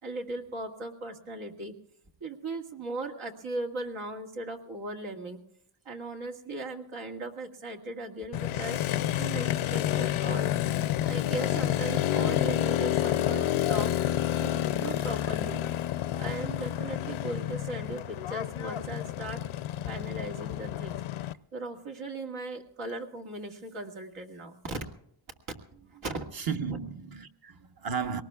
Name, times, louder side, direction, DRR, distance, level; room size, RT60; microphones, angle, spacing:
voice 1, 0.0-1.7 2.2-5.4 5.9-8.8 9.2-10.5 11.1-13.9 14.4-15.6 16.2-19.4 19.9-21.0 21.5-24.8 25.5-26.2, right 2 dB, 80° right, 2.2 m, -38 dB
Motorcycle, 8.3-21.3, left 12 dB, 80° left, 0.6 m, -29 dB
voice 2, 14.6-15.0 16.1-16.3 26.3-28.2, right 6 dB, 50° right, 1.1 m, -35 dB
23.5 x 19.0 x 2.3 m
cardioid pair, 85°, 48 cm